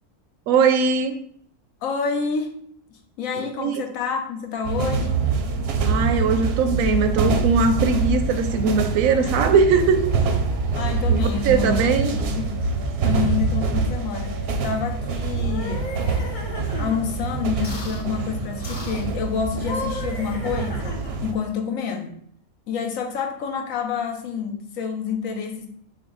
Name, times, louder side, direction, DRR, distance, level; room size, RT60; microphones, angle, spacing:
voice 1, 0.5-1.2 3.3-3.8 5.8-10.1 11.1-12.1, right 5 dB, 85° right, 9 dB, 1.0 m, -20 dB
voice 2, 1.8-2.6 2.9-5.3 9.2-9.4 10.7-12.6 13.0-14.4 14.6-15.9 16.8-22.1 22.7-25.7, left 6 dB, 80° left, 4 dB, 1.1 m, -28 dB
sound 1, 4.6-21.3, right 4 dB, 60° right, 0.7 m, -25 dB
sound 2, 15.3-17.0 17.6-18.0 18.6-19.1 19.5-21.3, left 2 dB, 40° left, 0.9 m, -35 dB
6.2 x 2.2 x 3.8 m, 0.62 s
omnidirectional pair, 1.4 m